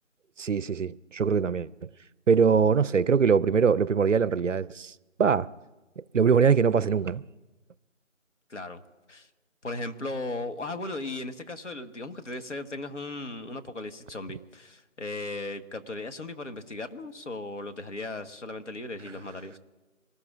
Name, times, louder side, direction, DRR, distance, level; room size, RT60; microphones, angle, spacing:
voice 1, 0.4-1.9 2.3-4.9 5.2-5.5 6.1-7.2, right 6 dB, 70° right, 0.5 m, -22 dB
voice 2, 8.5-8.8 9.1-9.3 9.6-19.6, left 2 dB, 60° left, 1.4 m, -37 dB
25.0 x 19.0 x 2.5 m
figure-of-eight pair, 170°, 40 cm